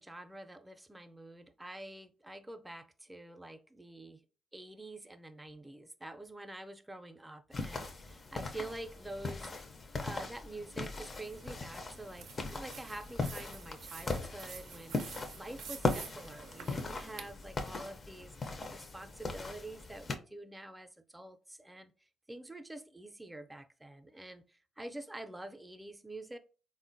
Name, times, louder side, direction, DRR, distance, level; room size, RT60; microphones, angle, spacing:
voice 1, 0.0-4.2 4.5-9.5 10.0-18.4 18.7-21.9 22.3-26.4, right 1 dB, 15° right, 0.5 m, -47 dB
sound 1, 7.5-20.2, left 3 dB, 45° left, 0.5 m, -39 dB
sound 2, 11.2-17.3, right 6 dB, 75° right, 0.4 m, -50 dB
3.6 x 2.1 x 2.5 m
hypercardioid pair, 50°, 0 cm